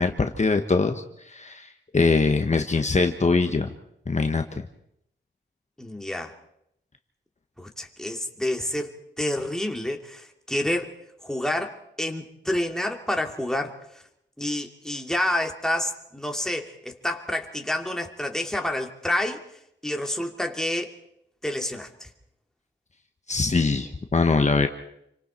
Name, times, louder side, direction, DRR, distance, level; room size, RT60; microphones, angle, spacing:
voice 1, 0.0-3.7 4.1-4.6 23.3-24.7, left 4 dB, 35° left, 1.3 m, -23 dB
voice 2, 5.8-6.3 7.6-10.9 11.2-13.8 14.4-19.4 19.8-20.9 21.4-22.1, left 1 dB, 5° left, 2.8 m, -28 dB
29.0 x 25.0 x 4.5 m
wide cardioid pair, 80°, 19 cm